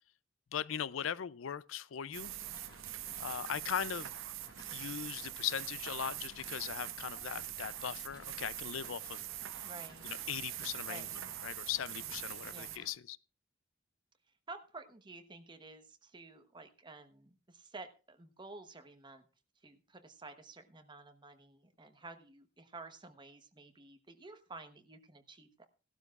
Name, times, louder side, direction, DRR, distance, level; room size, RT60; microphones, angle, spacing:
voice 1, 0.5-2.3 3.2-4.1 4.7-9.2 10.0-11.1 11.4-13.2, left 9 dB, 75° left, 0.4 m, -39 dB
sound 1, 2.1-12.9, left 1 dB, 20° left, 4.4 m, -57 dB
sound 2, 2.1-12.8, right 13 dB, 80° right, 0.7 m, -43 dB
voice 2, 9.6-10.1 10.8-11.1 12.5-12.8 14.5-19.2 19.6-25.7, right 3 dB, 25° right, 1.1 m, -51 dB
17.0 x 12.0 x 2.4 m
head